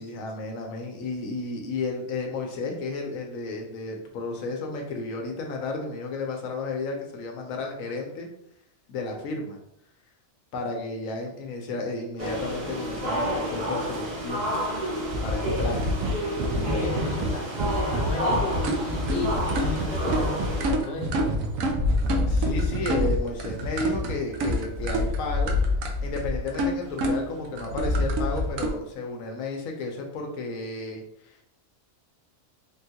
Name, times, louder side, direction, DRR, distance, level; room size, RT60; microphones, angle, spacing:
voice 1, 0.0-8.3 8.9-9.6 10.5-14.5 15.2-15.9 16.5-17.0 22.3-25.6 26.0-31.4, left 3 dB, 90° left, 2 dB, 1.1 m, -32 dB
sound 1, 12.2-20.7, equal, 50° right, 0.5 m, -30 dB
sound 2, 15.1-28.7, equal, 85° right, 1.0 m, -27 dB
voice 2, 16.6-21.4, left 3 dB, 65° left, 1 dB, 0.9 m, -34 dB
3.6 x 2.3 x 2.7 m, 0.73 s
omnidirectional pair, 1.4 m